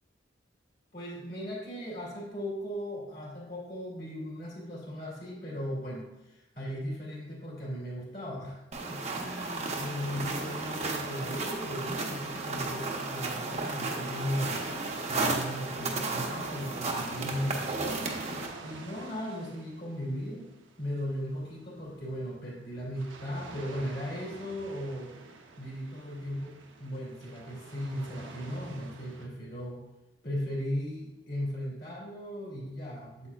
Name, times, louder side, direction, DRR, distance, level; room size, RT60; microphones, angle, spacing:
voice 1, 0.9-14.6 15.1-18.0 18.6-20.5 20.8-25.2 25.6-29.8 30.2-33.3, equal, 55° left, -6 dB, 2.5 m, -37 dB
sound 1, 8.7-18.5, right 3 dB, 35° right, 0.9 m, -34 dB
sound 2, 9.9-29.3, right 3 dB, 80° right, 0.8 m, -50 dB
8.4 x 7.6 x 2.4 m, 0.94 s
head